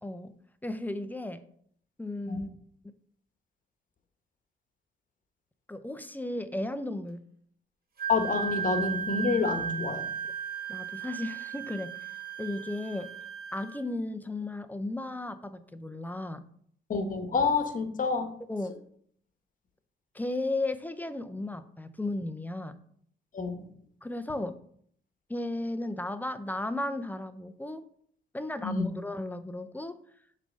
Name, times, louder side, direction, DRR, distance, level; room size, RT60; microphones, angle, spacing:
voice 1, 0.0-0.3 0.6-1.4 2.0-2.5 5.7-7.3 10.7-12.1 12.4-13.1 13.5-16.4 18.5-18.8 20.1-22.8 24.0-24.5 25.3-27.9 28.3-30.0, left 2 dB, 10° left, 11 dB, 0.5 m, -35 dB
Wind instrument woodwind instrument, 8.0-13.8, right 7 dB, 50° right, 1.5 m, -36 dB
voice 2, 8.1-10.1 16.9-18.3 23.3-23.6 28.6-28.9, left 4 dB, 40° left, 8 dB, 1.0 m, -28 dB
6.7 x 3.3 x 5.2 m, 0.62 s
cardioid pair, 90°, 20 cm